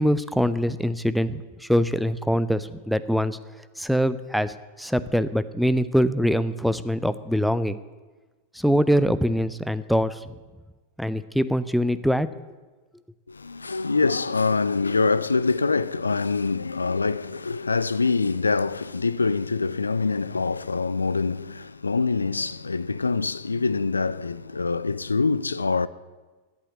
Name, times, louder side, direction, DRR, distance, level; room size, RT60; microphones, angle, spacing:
voice 1, 0.0-3.4 3.8-7.8 8.5-10.3 11.0-12.3, equal, ahead, 0.5 m, -23 dB
voice 2, 13.3-25.9, left 4 dB, 80° left, 0.3 m, -25 dB
8.4 x 8.4 x 9.2 m
figure-of-eight pair, 90°, 0 cm